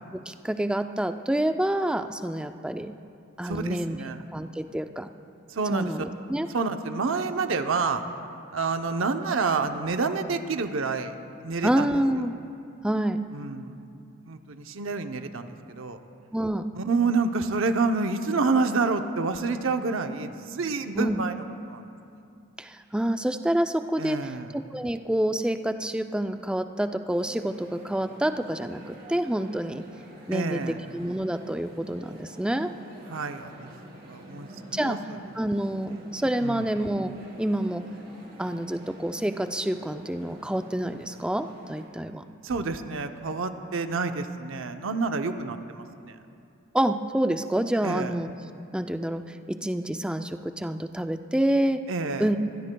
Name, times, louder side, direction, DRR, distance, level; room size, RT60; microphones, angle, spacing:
voice 1, 0.1-3.0 3.4-4.0 4.3-5.1 5.7-6.5 11.6-12.3 12.8-13.2 16.3-16.7 21.0-21.2 22.6-29.8 30.3-32.7 34.7-35.0 35.4-37.8 38.4-42.2 46.7-48.3 48.7-51.8 52.2-52.4, right 1 dB, 5° right, 8 dB, 0.4 m, -28 dB
voice 2, 3.4-4.2 5.5-6.1 6.5-8.0 8.5-11.1 11.4-12.0 13.3-13.8 14.2-16.0 16.7-21.3 21.7-21.9 24.0-24.5 30.3-30.8 33.1-33.7 34.1-35.2 35.8-36.0 36.4-36.7 42.4-46.2 47.8-48.2 51.9-52.3, right 4 dB, 80° right, 7 dB, 0.7 m, -28 dB
sound 1, 27.1-41.8, right 1 dB, 50° right, 3.3 m, -47 dB
24.5 x 16.0 x 2.3 m, 2.6 s
head